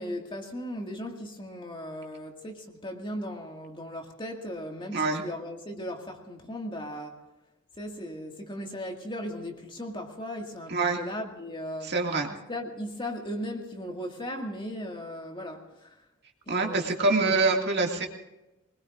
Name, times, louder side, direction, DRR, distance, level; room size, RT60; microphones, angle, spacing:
voice 1, 0.0-7.3 7.8-11.9 12.3-15.9 16.5-17.4, equal, 25° left, 2.0 m, -37 dB
voice 2, 11.8-12.3 16.5-18.1, right 3 dB, 50° right, 2.2 m, -25 dB
23.5 x 21.0 x 2.6 m
head